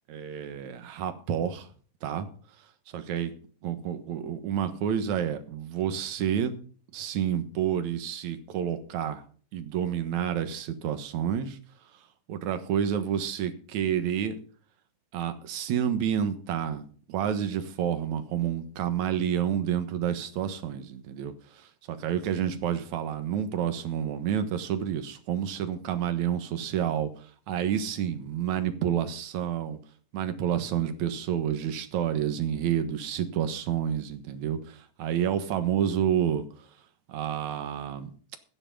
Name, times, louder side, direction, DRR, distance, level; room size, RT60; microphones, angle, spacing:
voice 1, 0.1-1.7 2.0-2.3 2.9-3.3 3.6-6.5 6.9-9.2 9.5-11.6 12.3-14.4 15.1-29.8 30.1-36.5 37.1-38.1, right 9 dB, 70° right, 9 dB, 2.6 m, -29 dB
12.5 x 9.9 x 5.4 m, 0.42 s
omnidirectional pair, 3.6 m